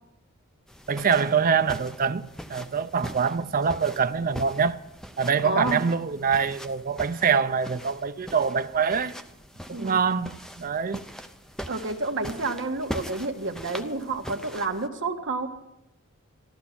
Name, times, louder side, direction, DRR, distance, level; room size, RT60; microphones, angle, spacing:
sound 1, 0.7-14.9, equal, ahead, 0.7 m, -42 dB
voice 1, 0.9-4.8 5.2-9.1 9.7-11.0, right 6 dB, 40° right, 0.5 m, -25 dB
voice 2, 5.4-5.8 9.7-10.0 11.7-15.5, right 3 dB, 55° right, 1.5 m, -29 dB
14.5 x 12.5 x 5.8 m
head